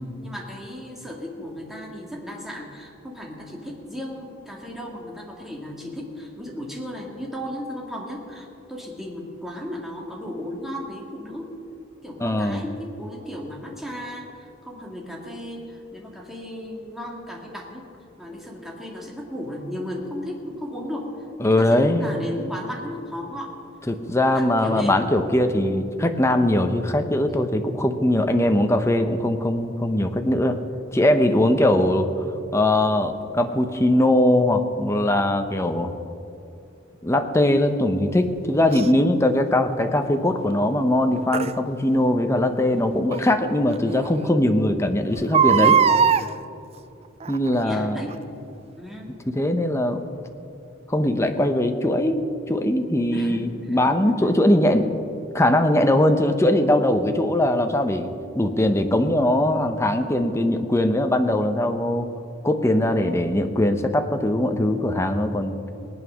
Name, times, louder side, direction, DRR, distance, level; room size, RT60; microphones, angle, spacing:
voice 1, 0.2-11.5 12.0-17.9 18.2-23.6 24.2-25.0 47.6-48.2 48.8-49.1 53.1-54.5, equal, ahead, -1 dB, 2.0 m, -35 dB
voice 2, 12.2-12.6 21.4-22.1 23.9-30.6 30.9-32.1 32.5-35.9 37.0-45.8 47.3-48.0 49.3-50.0 50.9-54.9 55.3-58.1 58.3-62.1 62.4-65.6, left 1 dB, 15° left, 6 dB, 0.8 m, -21 dB
Crying sobbing, 38.7-38.9 41.3-41.5 43.1-43.2 43.7-43.8 44.0-44.1 45.2-46.3 47.2-47.5 48.1-48.2, right 7 dB, 30° right, 0.3 m, -18 dB
19.0 x 9.3 x 6.3 m, 2.7 s
head